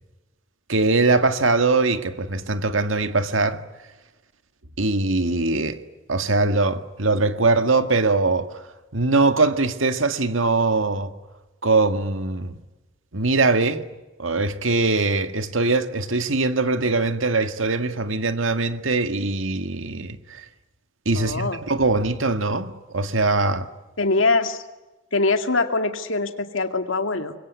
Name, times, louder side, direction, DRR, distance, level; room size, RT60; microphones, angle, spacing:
voice 1, 0.7-3.6 4.8-5.8 6.1-8.6 8.9-11.1 11.6-12.6 13.1-13.8 14.2-20.4 21.1-23.7, right 3 dB, 85° right, 1.9 m, -22 dB
voice 2, 21.2-21.6 24.0-24.6 25.1-27.4, left 3 dB, 80° left, 2.2 m, -23 dB
26.5 x 22.5 x 9.5 m
head